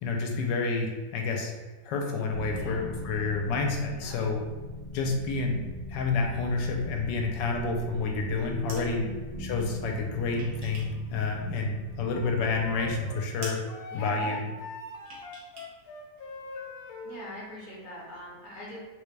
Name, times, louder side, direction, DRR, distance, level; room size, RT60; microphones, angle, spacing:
voice 1, 0.0-1.5 1.8-4.4 4.9-5.6 5.9-9.0 9.4-13.6 13.9-14.4, left 4 dB, 85° left, 2 dB, 1.2 m, -29 dB
sound 1, 2.3-13.0, left 2 dB, 60° right, 1.4 m, -40 dB
voice 2, 2.4-2.8 3.9-4.2 9.0-9.2 13.9-14.5 17.0-18.8, left 1 dB, 40° left, -5 dB, 0.7 m, -43 dB
sound 2, 8.2-8.9 10.0-11.0 11.3-12.2 12.6-12.7 13.0-13.1 13.4-13.7 15.0-15.7 16.0-16.1, right 2 dB, 90° right, 1.5 m, -45 dB
Wind instrument woodwind instrument, 12.1-17.1, left 1 dB, 70° left, 1.0 m, -40 dB
3.9 x 2.2 x 3.1 m, 1.3 s
omnidirectional pair, 1.9 m